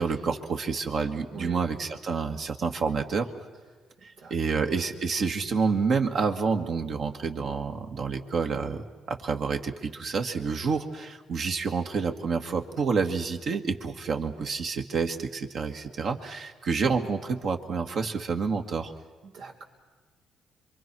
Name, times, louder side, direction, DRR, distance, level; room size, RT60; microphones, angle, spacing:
voice 1, 0.0-3.3 4.0-18.9, right 5 dB, 60° right, 4 dB, 1.9 m, -28 dB
voice 2, 1.3-1.6 4.2-4.3 19.2-19.6, right 5 dB, 90° right, -1 dB, 3.9 m, -42 dB
27.0 x 23.5 x 6.2 m, 1.4 s
cardioid pair, 90°, 0 cm